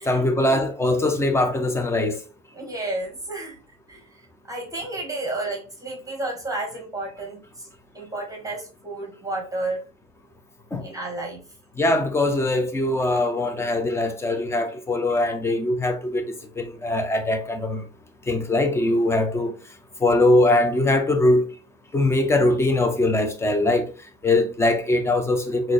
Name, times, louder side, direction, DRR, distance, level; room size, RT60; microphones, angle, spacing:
voice 1, 0.1-2.2 10.7-10.8 11.8-16.2 16.6-17.8 18.3-19.5 20.0-21.4 21.9-23.8 24.2-25.7, left 2 dB, 5° left, 0.5 m, -21 dB
voice 2, 2.5-3.6 3.9-4.0 4.5-7.7 7.9-9.8 10.8-11.4, right 2 dB, 10° right, 1.2 m, -31 dB
3.9 x 2.7 x 3.1 m
hypercardioid pair, 105°, 37 cm